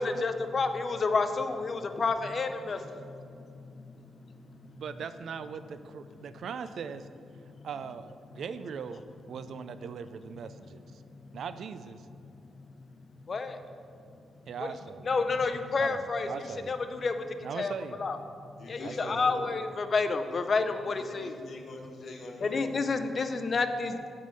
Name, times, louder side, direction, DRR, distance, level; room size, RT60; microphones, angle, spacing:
voice 1, 0.0-4.8 7.5-7.7 11.0-11.3 12.3-12.7 13.2-13.6 14.6-14.7 15.1-16.3 16.7-17.7 18.0-21.4 22.4-24.1, left 4 dB, 45° left, 8 dB, 0.5 m, -30 dB
voice 2, 2.4-2.8 4.0-4.1 18.6-19.5 20.8-22.7, left 2 dB, 65° left, 2 dB, 1.1 m, -45 dB
voice 3, 4.8-7.1 7.6-9.0 9.3-11.0 11.3-12.1 14.5-15.1 15.8-16.7 17.4-18.0 18.8-19.2, right 6 dB, 70° right, 12 dB, 0.3 m, -40 dB
8.6 x 3.7 x 6.5 m, 2.4 s
cardioid pair, 80°, 0 cm